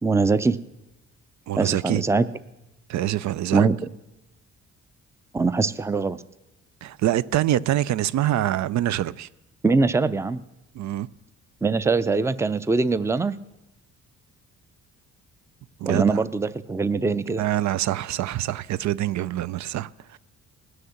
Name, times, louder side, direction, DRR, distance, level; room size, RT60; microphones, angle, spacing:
voice 1, 0.0-0.6 1.6-2.3 3.5-3.7 5.3-6.2 9.6-10.4 11.6-13.3 15.9-17.4, right 4 dB, 10° right, 0.5 m, -22 dB
voice 2, 1.5-2.0 2.9-3.7 6.8-9.3 10.7-11.1 15.8-16.2 17.4-20.2, right 13 dB, 65° right, 0.5 m, -25 dB
19.5 x 6.5 x 7.2 m
cardioid pair, 90°, 30 cm